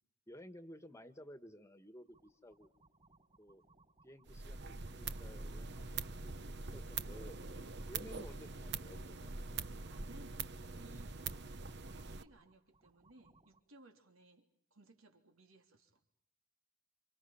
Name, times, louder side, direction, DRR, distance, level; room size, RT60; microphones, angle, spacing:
voice 1, 0.3-2.7 3.4-3.6 4.0-7.4 7.9-9.4, equal, 15° left, 1.6 m, -55 dB
sound 1, 2.0-13.6, right 2 dB, 30° right, 5.1 m, -69 dB
sound 2, 4.3-12.2, right 4 dB, 55° right, 1.0 m, -44 dB
voice 2, 7.5-7.9 9.5-11.3 11.9-16.0, right 2 dB, 80° right, 3.5 m, -62 dB
30.0 x 27.0 x 5.8 m
head